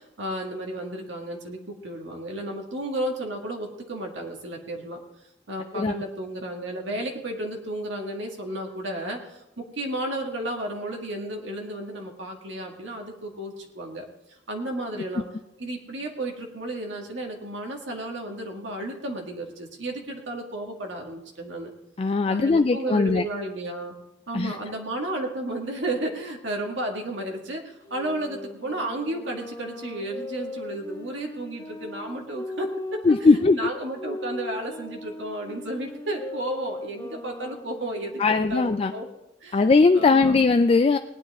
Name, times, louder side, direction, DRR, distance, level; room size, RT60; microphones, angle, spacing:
voice 1, 0.0-5.0 5.5-15.2 15.6-21.7 22.3-23.9 24.3-39.1 39.4-39.6 39.9-40.4, right 1 dB, 75° right, 1 dB, 1.9 m, -33 dB
voice 2, 22.0-23.2 24.3-24.6 33.0-33.7 38.2-38.9 39.5-41.0, left 3 dB, 30° left, 8 dB, 0.3 m, -19 dB
sound 1, 27.8-33.3 33.9-39.1, left 2 dB, 15° left, 1.6 m, -39 dB
19.0 x 9.9 x 3.6 m, 0.90 s
head